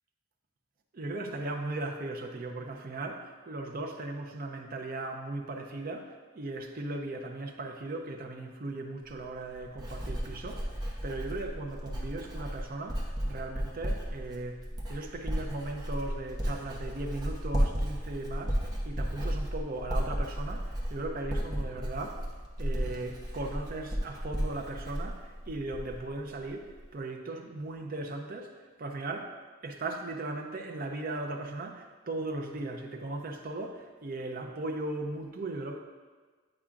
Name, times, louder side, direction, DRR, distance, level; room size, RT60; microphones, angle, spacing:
voice 1, 0.9-22.3 22.6-28.5 28.8-29.4 29.6-35.8, right 2 dB, 45° right, 2 dB, 0.6 m, -37 dB
Writing, 9.0-26.1 26.4-26.8, equal, 20° right, 0.8 m, -34 dB
8.7 x 4.8 x 2.4 m, 1.4 s
head